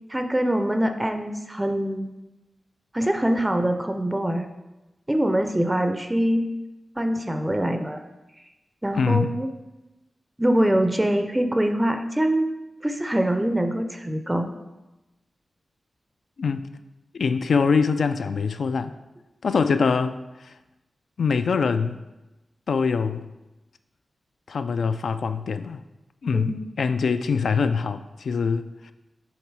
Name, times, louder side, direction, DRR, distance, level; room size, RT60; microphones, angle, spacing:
voice 1, 0.1-2.1 2.9-4.5 5.1-6.5 7.0-8.0 8.8-9.5 10.4-12.5 12.8-14.5 26.3-26.7, right 1 dB, 10° right, 6 dB, 0.4 m, -24 dB
voice 2, 8.9-9.4 16.4-16.6 17.1-18.9 19.4-20.5 21.2-22.0 22.7-23.2 24.5-25.8 26.2-28.9, left 5 dB, 75° left, 10 dB, 0.3 m, -24 dB
7.1 x 3.7 x 4.6 m, 1.0 s
wide cardioid pair, 120°, 0 cm